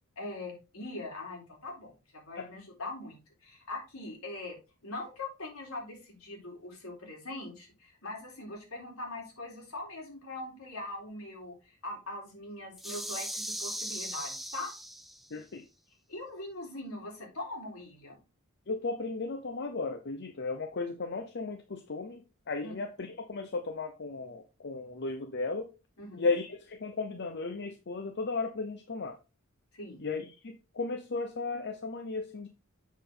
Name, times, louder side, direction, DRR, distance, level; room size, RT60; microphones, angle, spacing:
voice 1, 0.2-4.6 4.8-14.7 16.1-18.2 22.6-22.7 26.0-26.3 29.7-30.0, left 2 dB, 75° left, 3.8 m, -42 dB
sound 1, 12.8-15.3, right 1 dB, ahead, 0.7 m, -38 dB
voice 2, 15.3-15.6 18.7-25.7 26.2-29.2 30.0-32.5, left 3 dB, 55° left, 0.8 m, -35 dB
7.3 x 6.5 x 3.8 m
head